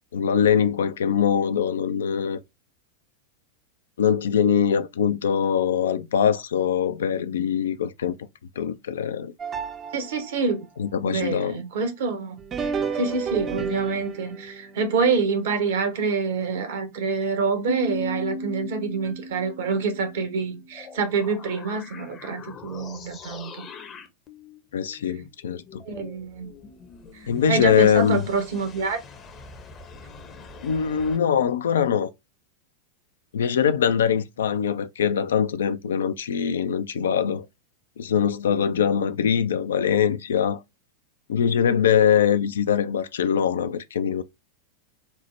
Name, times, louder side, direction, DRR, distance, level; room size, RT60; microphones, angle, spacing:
voice 1, 0.1-2.4 4.0-8.2 8.6-9.3 10.8-11.6 24.7-25.8 27.3-28.3 30.6-32.1 33.3-37.5 38.0-40.6 41.3-44.2, left 8 dB, 65° left, 0.3 m, -22 dB
sound 1, 9.4-10.5 12.4-16.8 17.2-17.3 18.2-18.3 19.0-19.1, right 6 dB, 25° right, 0.5 m, -33 dB
voice 2, 9.9-10.7 11.0-12.4 12.9-23.6 25.9-26.5 27.1-29.0, right 4 dB, 55° right, 0.9 m, -26 dB
Piano, 17.7-21.1, equal, 75° right, 2.3 m, -35 dB
sound 2, 20.7-31.2, left 5 dB, 25° left, 0.6 m, -44 dB
4.4 x 2.0 x 3.1 m
figure-of-eight pair, 90°, 0 cm